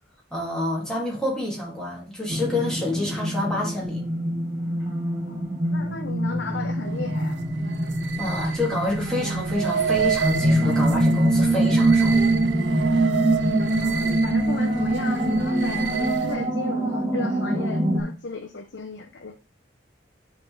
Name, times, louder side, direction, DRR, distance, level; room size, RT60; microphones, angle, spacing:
voice 1, 0.3-4.0 8.2-12.2, left 1 dB, 5° left, 2.1 m, -28 dB
sound 1, 2.3-18.0, right 1 dB, 15° right, 1.7 m, -24 dB
voice 2, 5.7-7.4 13.8-19.3, left 4 dB, 70° left, 0.7 m, -35 dB
sound 2, 6.8-16.5, right 7 dB, 75° right, 0.6 m, -30 dB
9.8 x 3.8 x 3.8 m
head